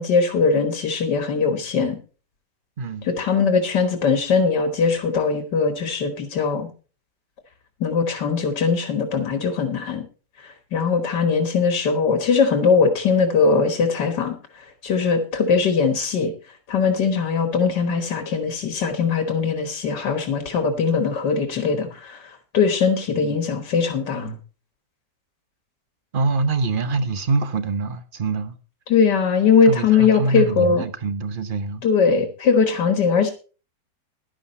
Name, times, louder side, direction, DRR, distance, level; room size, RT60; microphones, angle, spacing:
voice 1, 0.0-2.0 3.0-6.7 7.8-10.0 10.4-16.3 16.7-24.4 28.9-30.8 31.8-33.3, left 5 dB, 90° left, 2.2 m, -20 dB
voice 2, 2.8-3.1 26.1-28.6 29.7-31.8, right 3 dB, 40° right, 0.9 m, -24 dB
11.5 x 11.5 x 4.2 m
omnidirectional pair, 1.8 m